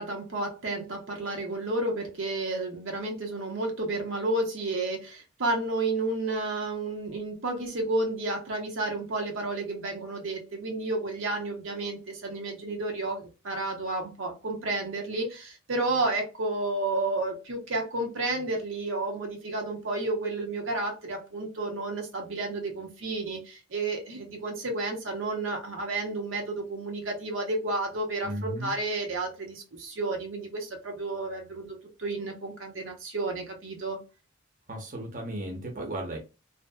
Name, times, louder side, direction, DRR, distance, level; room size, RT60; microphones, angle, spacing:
voice 1, 0.0-34.0, right 2 dB, 75° right, 2 dB, 0.8 m, -31 dB
voice 2, 28.2-28.7 34.7-36.2, right 1 dB, 40° right, 1 dB, 0.7 m, -35 dB
2.7 x 2.5 x 2.2 m, 0.29 s
head